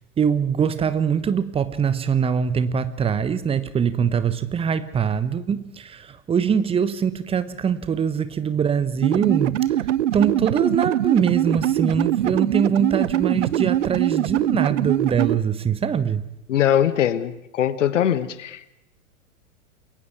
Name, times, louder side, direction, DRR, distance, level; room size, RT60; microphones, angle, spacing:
voice 1, 0.2-9.6 10.1-16.2, right 7 dB, 15° right, 1.1 m, -23 dB
sound 1, 9.0-15.4, right 12 dB, 55° right, 0.8 m, -22 dB
voice 2, 16.5-18.7, left 10 dB, 60° left, 1.4 m, -21 dB
29.0 x 22.0 x 4.7 m
figure-of-eight pair, 100°, 42 cm